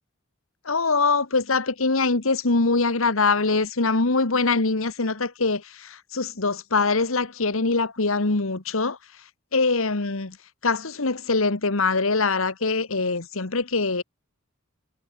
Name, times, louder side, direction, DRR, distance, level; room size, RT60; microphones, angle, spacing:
voice 1, 0.6-9.0 9.5-10.4 10.6-14.0, left 3 dB, 75° left, 1.6 m, -23 dB
head